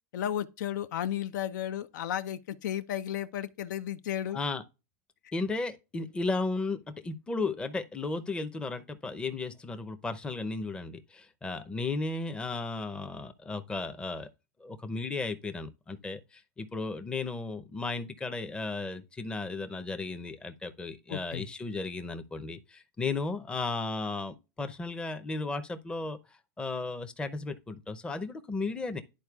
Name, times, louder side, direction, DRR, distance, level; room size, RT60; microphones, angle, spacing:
voice 1, 0.1-4.4 21.1-21.5, left 10 dB, 70° left, 0.6 m, -33 dB
voice 2, 4.3-4.6 5.3-14.3 14.6-29.0, left 3 dB, 10° left, 0.6 m, -35 dB
11.5 x 4.3 x 2.3 m
supercardioid pair, 130°, 10 cm